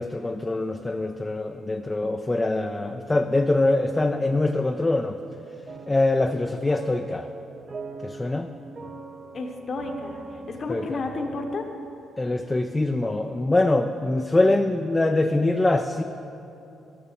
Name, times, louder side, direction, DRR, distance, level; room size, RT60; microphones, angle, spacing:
voice 1, 0.0-5.2 5.9-7.3 8.0-8.5 10.7-11.0 12.2-16.0, left 2 dB, 20° left, 5 dB, 0.4 m, -23 dB
sound 1, 5.7-11.6, right 3 dB, 40° right, 0.8 m, -41 dB
voice 2, 9.3-11.7, left 3 dB, 45° left, 3 dB, 1.1 m, -32 dB
12.5 x 6.8 x 7.4 m, 2.8 s
cardioid pair, 90°, 0 cm